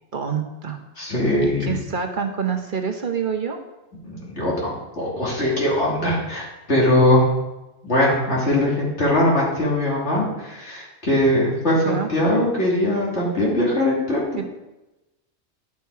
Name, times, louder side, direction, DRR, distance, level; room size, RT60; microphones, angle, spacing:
voice 1, 0.1-0.8 1.4-3.6 11.8-12.1 14.4-14.5, right 6 dB, 50° right, 4 dB, 1.0 m, -26 dB
voice 2, 1.0-1.7 4.0-7.3 7.8-14.5, left 1 dB, 85° left, -5 dB, 3.1 m, -21 dB
11.0 x 5.9 x 4.7 m, 1.0 s
omnidirectional pair, 1.1 m